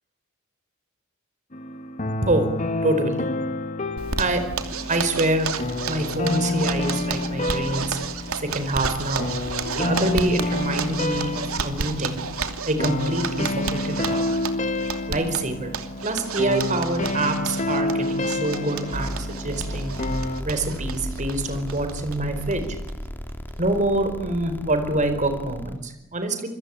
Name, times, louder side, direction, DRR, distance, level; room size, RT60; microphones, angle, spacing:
sound 1, 1.5-20.4, left 2 dB, 35° left, 1.8 m, -29 dB
voice 1, 2.2-2.5 2.8-3.3 4.2-4.4 4.9-5.5 5.9-8.0 8.4-9.3 9.8-12.2 12.7-14.3 15.1-15.7 16.0-19.9 20.4-22.8 23.6-26.5, right 1 dB, 35° right, 8 dB, 4.6 m, -26 dB
Zipper (clothing), 4.0-22.2 22.5-22.6 22.9-23.0 23.3-23.7, right 5 dB, 80° right, 2.8 m, -32 dB
sound 2, 18.9-25.8, equal, 10° left, 2.6 m, -34 dB
27.5 x 23.0 x 8.9 m, 0.89 s
head